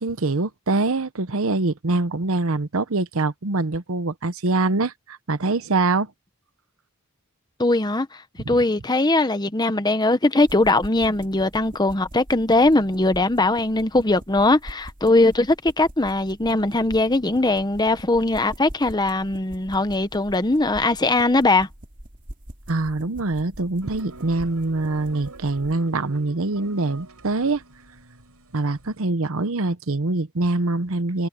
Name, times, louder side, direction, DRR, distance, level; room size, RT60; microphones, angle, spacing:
voice 1, 0.0-6.1 8.5-8.6 22.7-27.6 28.5-31.3, right 2 dB, 65° right, 1.0 m, -24 dB
voice 2, 7.6-8.1 8.5-21.7, left 2 dB, 20° left, 1.0 m, -20 dB
sound 1, 10.4-25.8, right 1 dB, 35° right, 2.7 m, -43 dB
sound 2, 23.8-29.0, right 3 dB, 85° right, 4.4 m, -46 dB
head